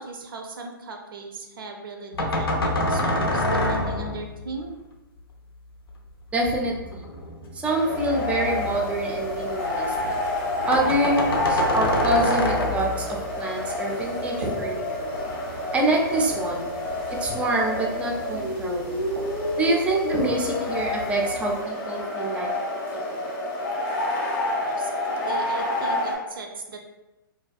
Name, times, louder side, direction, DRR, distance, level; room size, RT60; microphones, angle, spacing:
voice 1, 0.0-4.8 24.7-26.8, right 4 dB, 70° right, 3 dB, 0.5 m, -38 dB
sound 1, 2.1-4.5 6.5-9.8 10.1-10.2 10.4-10.5 10.7-13.2, left 1 dB, 90° left, 0.5 m, -27 dB
voice 2, 6.3-7.0 7.5-10.2 10.6-15.1 15.7-16.7 17.1-19.0 19.6-22.5, right 2 dB, 10° right, -1 dB, 0.4 m, -26 dB
sound 2, 7.7-26.2, left 1 dB, 30° left, 0.6 m, -28 dB
sound 3, 8.4-21.6, right 1 dB, 90° right, 0.9 m, -40 dB
2.4 x 2.2 x 2.4 m, 1.0 s
hypercardioid pair, 120°, 12 cm